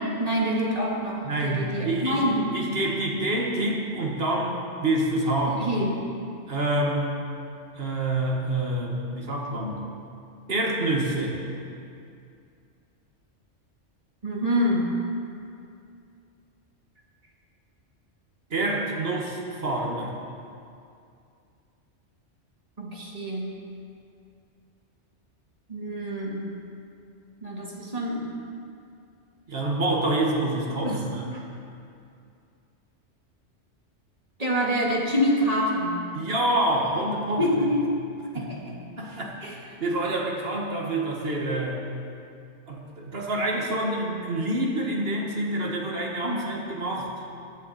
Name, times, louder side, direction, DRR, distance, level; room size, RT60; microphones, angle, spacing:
voice 1, 0.0-2.5 5.5-5.9 14.2-14.9 22.8-23.6 25.7-26.5 27.4-28.3 30.8-31.0 31.3-31.4 34.4-36.0 37.4-37.9 38.3-38.8 39.4-39.6 46.2-46.6, equal, 30° right, -3 dB, 2.0 m, -26 dB
voice 2, 1.2-2.2 2.5-5.7 6.5-7.1 7.7-9.9 10.5-11.4 18.5-20.1 29.5-31.3 36.1-37.7 38.3-38.5 39.0-39.3 39.8-41.8 42.7-47.1, right 1 dB, 55° right, -1 dB, 1.9 m, -27 dB
15.0 x 12.0 x 4.3 m, 2.5 s
omnidirectional pair, 1.2 m